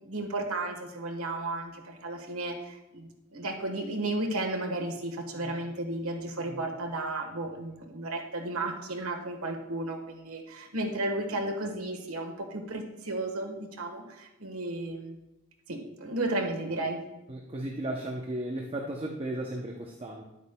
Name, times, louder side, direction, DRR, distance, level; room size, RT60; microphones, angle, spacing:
voice 1, 0.0-15.2 15.7-17.0, right 2 dB, 80° right, 4 dB, 1.3 m, -33 dB
voice 2, 17.3-20.2, right 1 dB, 25° right, 0 dB, 0.7 m, -35 dB
10.5 x 8.2 x 2.2 m, 0.96 s
head